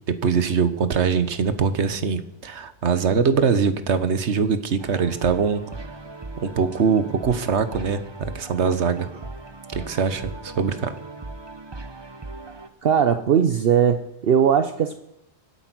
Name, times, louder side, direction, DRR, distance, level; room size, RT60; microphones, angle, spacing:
voice 1, 0.2-5.6 6.4-8.0 8.3-9.1 9.7-10.9, right 6 dB, 75° right, 12 dB, 1.4 m, -22 dB
sound 1, 4.8-12.7, right 2 dB, 25° right, 0.9 m, -38 dB
voice 2, 12.8-15.0, right 8 dB, 60° right, 9 dB, 0.9 m, -19 dB
24.0 x 8.5 x 6.1 m, 0.81 s
omnidirectional pair, 1.2 m